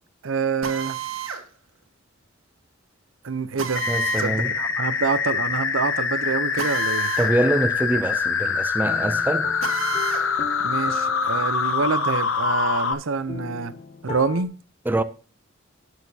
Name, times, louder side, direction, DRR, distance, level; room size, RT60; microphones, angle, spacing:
voice 1, 0.2-1.0 3.2-3.9 4.2-7.1 10.6-13.7 14.0-14.5 15.0-15.1, right 5 dB, 70° right, 0.7 m, -26 dB
Drill, 0.6-1.4 3.6-4.3 6.6-7.3 7.7-7.8 9.6-10.3, right 7 dB, 90° right, 1.7 m, -31 dB
sound 1, 3.8-12.9, left 5 dB, 70° left, 1.0 m, -24 dB
voice 2, 3.9-4.5 7.2-9.5 14.9-15.0, right 1 dB, 10° right, 0.4 m, -24 dB
sound 2, 8.8-14.4, left 3 dB, 30° left, 0.6 m, -39 dB
17.0 x 6.5 x 2.8 m
head